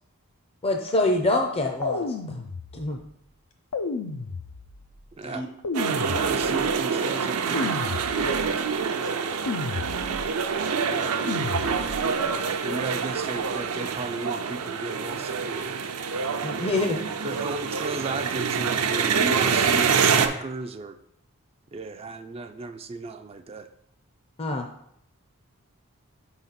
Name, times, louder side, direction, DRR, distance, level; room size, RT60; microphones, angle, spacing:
voice 1, 0.6-2.4 2.7-3.0 16.4-17.0 24.4-24.7, left 2 dB, 25° left, 3 dB, 0.5 m, -25 dB
sound 1, 1.8-3.0 3.7-4.9 5.6-6.8 7.5-8.6 9.5-10.4 11.3-12.2, left 4 dB, 85° left, 0.6 m, -32 dB
sound 2, 5.7-20.3, right 6 dB, 75° right, 0.6 m, -26 dB
voice 2, 6.0-7.7 12.6-15.7 17.2-21.0 21.7-23.7, right 3 dB, 25° right, 8 dB, 0.3 m, -35 dB
voice 3, 8.2-8.6 8.9-9.6 10.0-10.6, right 1 dB, 65° left, 2 dB, 1.5 m, -39 dB
5.6 x 3.9 x 5.8 m, 0.74 s
head